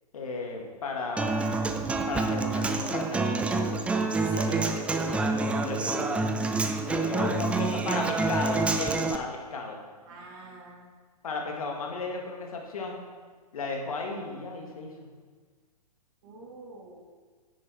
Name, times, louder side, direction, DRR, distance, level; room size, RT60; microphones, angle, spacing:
voice 1, 0.1-1.6 2.1-3.5 5.1-6.3 6.9-9.8 11.2-13.0 13.5-15.1, left 3 dB, 60° left, 1 dB, 2.2 m, -35 dB
Human voice / Acoustic guitar, 1.2-9.2, right 3 dB, 5° right, 0.4 m, -27 dB
voice 2, 4.1-4.7 10.1-10.9 16.2-17.0, right 3 dB, 40° right, -2 dB, 2.7 m, -41 dB
10.5 x 8.7 x 4.6 m, 1.5 s
figure-of-eight pair, 115°, 20 cm